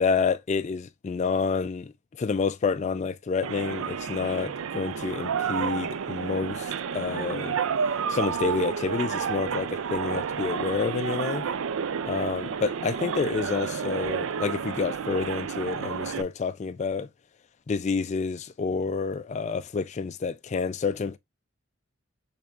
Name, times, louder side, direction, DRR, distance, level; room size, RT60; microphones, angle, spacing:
voice 1, 0.0-7.6 8.1-11.4 12.1-17.1 17.7-21.2, left 5 dB, 35° left, 0.3 m, -29 dB
sound 1, 3.4-16.2, right 6 dB, 70° right, 0.4 m, -30 dB
6.4 x 3.4 x 2.4 m
head